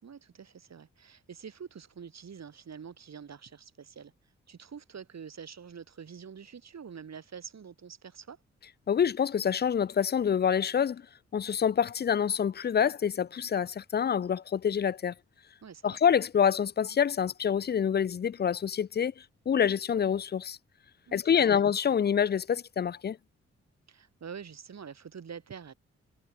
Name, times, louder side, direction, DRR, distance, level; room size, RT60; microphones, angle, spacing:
voice 1, 0.0-4.1 4.5-8.4 15.6-16.0 21.1-21.5 23.9-25.7, right 7 dB, 60° right, 4.8 m, -46 dB
voice 2, 8.9-11.0 11.3-15.1 15.8-19.1 19.5-20.6 21.1-23.2, left 8 dB, 35° left, 0.5 m, -26 dB
supercardioid pair, 40°, 30 cm